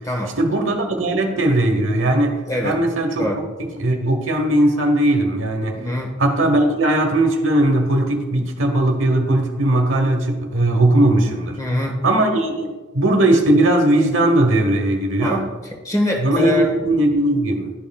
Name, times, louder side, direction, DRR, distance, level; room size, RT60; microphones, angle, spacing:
voice 1, 0.4-5.8 6.2-11.6 12.0-15.5 16.2-17.7, right 1 dB, 80° right, 4 dB, 0.9 m, -18 dB
voice 2, 5.7-6.1 11.6-12.0 15.2-15.4 15.8-16.7, left 1 dB, 15° left, 1 dB, 1.2 m, -23 dB
11.5 x 5.4 x 2.3 m, 1.2 s
head